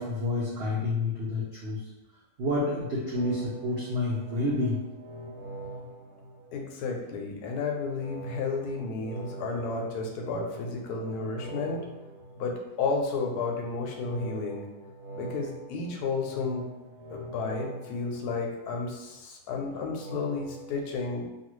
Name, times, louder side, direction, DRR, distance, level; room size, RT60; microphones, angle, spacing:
voice 1, 0.0-1.8 2.4-4.8, left 2 dB, 60° right, -6 dB, 0.7 m, -29 dB
sound 1, 3.1-7.0 7.9-13.0 13.9-19.0 19.9-20.7, right 2 dB, 80° right, 1.1 m, -43 dB
voice 2, 6.5-11.9 12.4-14.6 15.1-16.7 17.1-21.3, left 4 dB, 80° left, 1 dB, 1.1 m, -32 dB
2.6 x 2.4 x 3.0 m, 0.99 s
omnidirectional pair, 1.6 m